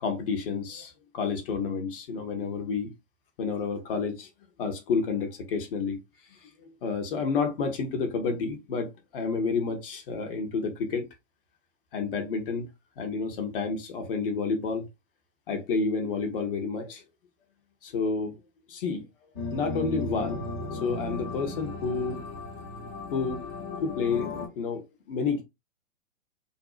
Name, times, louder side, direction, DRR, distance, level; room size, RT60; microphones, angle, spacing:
voice 1, 0.0-2.9 3.4-4.3 4.6-6.0 6.8-8.9 9.1-11.1 11.9-12.7 13.0-14.9 15.5-17.0 17.8-18.3 18.7-19.0 19.5-20.4 20.7-22.2 23.1-23.4 23.8-24.8 25.1-25.4, left 5 dB, 45° left, 0.7 m, -30 dB
sound 1, 19.4-24.5, left 3 dB, 20° left, 0.4 m, -36 dB
2.6 x 2.1 x 2.3 m
figure-of-eight pair, 110°, 38 cm